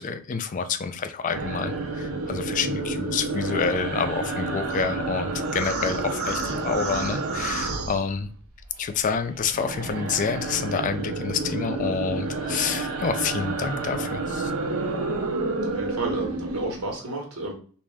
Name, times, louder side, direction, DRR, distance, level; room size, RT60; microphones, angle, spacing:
voice 1, 0.0-8.3 8.8-14.5, left 5 dB, 35° left, 9 dB, 0.3 m, -28 dB
sound 1, 1.3-8.6 8.9-16.9, right 3 dB, 70° right, 0.6 m, -30 dB
voice 2, 15.6-17.5, right 2 dB, 90° right, 0 dB, 1.2 m, -31 dB
3.2 x 2.5 x 3.4 m, 0.43 s
head